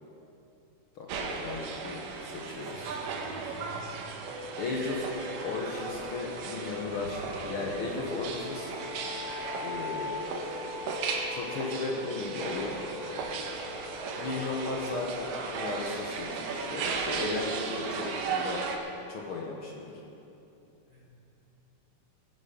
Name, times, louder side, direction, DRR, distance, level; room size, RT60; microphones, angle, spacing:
voice 1, 0.9-3.0 4.6-5.1 5.4-8.7 9.6-10.2 11.3-12.8 14.2-18.6 19.1-20.0, left 3 dB, 70° left, -1 dB, 1.3 m, -35 dB
sound 1, 1.1-18.8, right 5 dB, 70° right, 2.7 m, -36 dB
voice 2, 2.6-3.7 20.9-21.2, equal, 30° left, -10 dB, 4.2 m, -49 dB
sound 2, 4.2-19.6, left 4 dB, 50° left, 1.7 m, -43 dB
Sink (filling or washing), 4.9-8.6, right 1 dB, 45° right, 4.5 m, -50 dB
20.5 x 9.8 x 5.2 m, 2.8 s
omnidirectional pair, 4.1 m